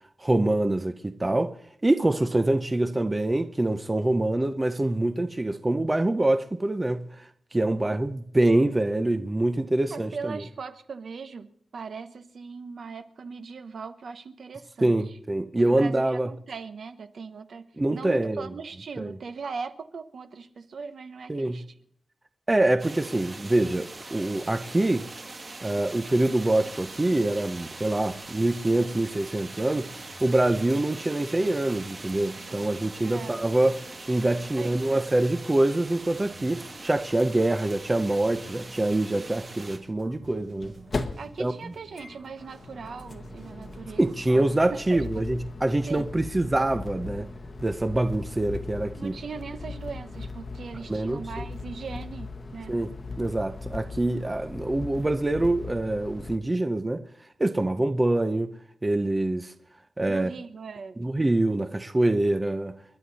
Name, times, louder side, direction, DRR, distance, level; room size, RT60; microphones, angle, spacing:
voice 1, 0.2-1.6 1.8-10.4 14.8-16.3 17.8-18.5 19.0-19.1 21.3-21.6 22.5-25.1 25.6-29.9 30.2-33.8 34.1-40.7 41.4-41.5 44.0-47.3 47.6-49.2 50.9-51.4 52.7-52.9 53.2-57.0 57.4-58.5 58.8-59.5 60.0-60.3 61.0-62.8, right 1 dB, 15° right, 0.6 m, -25 dB
voice 2, 9.9-15.2 15.6-21.7 33.0-33.5 34.4-34.8 41.2-45.3 45.9-46.1 49.0-52.8 60.1-61.0, right 5 dB, 55° right, 1.1 m, -39 dB
sound 1, 22.8-39.8, right 2 dB, 35° right, 2.1 m, -42 dB
sound 2, 26.4-45.3, right 3 dB, 85° right, 7.5 m, -51 dB
sound 3, 37.8-37.9 38.1-38.2 40.1-56.4, left 3 dB, 35° left, 1.1 m, -39 dB
29.5 x 11.0 x 4.2 m
wide cardioid pair, 180°, 0 cm